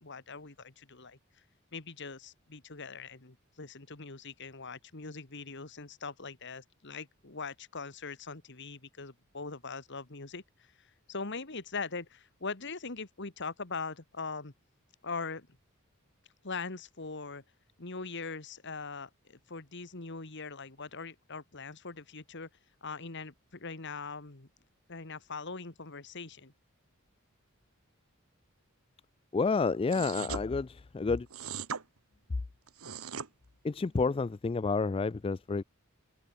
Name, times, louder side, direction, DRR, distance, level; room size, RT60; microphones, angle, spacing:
voice 1, 0.0-1.2 1.7-14.5 15.0-15.5 16.4-17.4 17.8-22.5 22.8-24.5 24.9-26.5, left 4 dB, 55° left, 2.0 m, -41 dB
voice 2, 29.3-31.3 33.6-35.6, left 4 dB, 25° left, 0.3 m, -30 dB
sound 1, 29.9-30.4 31.3-31.8 32.7-33.3, right 7 dB, 80° right, 1.3 m, -39 dB
head